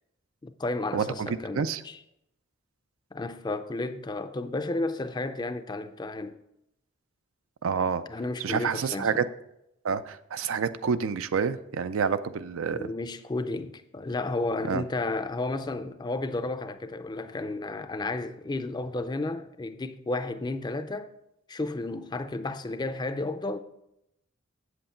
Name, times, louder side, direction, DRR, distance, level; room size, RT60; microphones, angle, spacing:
voice 1, 0.4-2.0 3.1-6.4 8.1-9.2 12.7-21.1 21.5-23.6, left 2 dB, 20° left, 0.4 m, -32 dB
voice 2, 0.9-1.8 7.6-8.1 8.4-9.2 9.8-12.9 14.6-14.8, right 6 dB, 85° right, 0.4 m, -28 dB
7.8 x 7.7 x 4.3 m
head